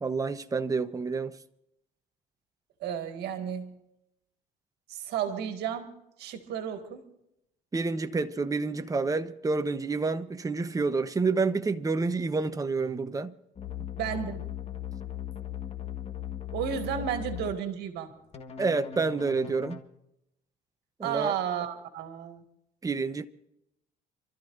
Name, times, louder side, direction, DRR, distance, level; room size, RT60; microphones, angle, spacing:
voice 1, 0.0-1.4 7.7-13.3 18.6-19.8 21.0-21.4 22.8-23.3, right 4 dB, 20° right, 1.0 m, -28 dB
voice 2, 2.8-3.7 4.9-5.9 6.2-7.1 13.8-14.4 16.5-18.1 21.0-22.4, right 9 dB, 75° right, 2.0 m, -33 dB
sound 1, 13.6-17.5 18.3-19.8, left 11 dB, 40° left, 1.6 m, -38 dB
28.5 x 13.5 x 2.7 m
cardioid pair, 110°, 17 cm